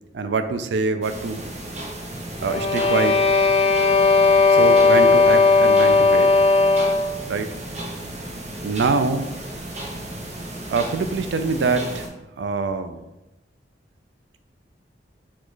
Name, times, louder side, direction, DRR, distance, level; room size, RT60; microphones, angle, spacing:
voice 1, 0.1-1.5 2.4-3.3 4.5-6.3 7.3-7.8 8.6-9.3 10.7-12.1 12.4-13.0, right 4 dB, 80° right, 9 dB, 0.4 m, -24 dB
sound 1, 1.0-12.1, right 1 dB, 40° right, 0.7 m, -34 dB
sound 2, 2.4-7.2, left 3 dB, 35° left, 0.4 m, -16 dB
4.9 x 2.4 x 3.9 m, 0.97 s
head